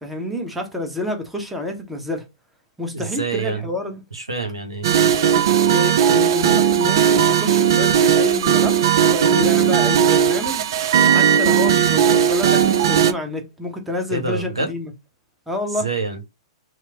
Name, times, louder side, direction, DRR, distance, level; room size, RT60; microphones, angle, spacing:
voice 1, 0.0-2.2 2.8-4.0 5.7-10.7 11.1-14.9 15.5-15.9, left 1 dB, 5° right, 0.9 m, -28 dB
voice 2, 2.9-3.7 4.1-4.9 14.1-14.7 15.8-16.2, right 4 dB, 85° right, 0.7 m, -26 dB
sound 1, 4.8-13.1, right 8 dB, 55° right, 0.4 m, -17 dB
3.0 x 2.0 x 3.5 m
figure-of-eight pair, 110°, 3 cm